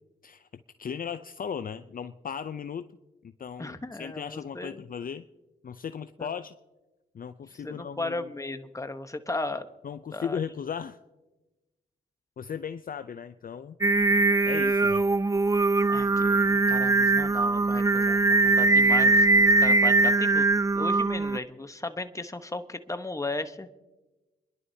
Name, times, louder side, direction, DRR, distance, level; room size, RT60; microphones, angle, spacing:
voice 1, 0.8-2.9 3.2-5.2 5.6-6.6 7.1-8.3 9.8-11.0 12.4-13.7 14.5-15.0, left 7 dB, 45° left, 12 dB, 0.5 m, -36 dB
voice 2, 3.6-4.8 6.2-6.3 7.6-9.7 10.1-10.4 15.9-20.5 20.7-23.7, left 2 dB, 15° left, 9 dB, 1.0 m, -36 dB
Singing, 13.8-21.4, right 3 dB, 15° right, 0.4 m, -21 dB
30.0 x 11.0 x 2.8 m, 1.1 s
supercardioid pair, 50°, 20 cm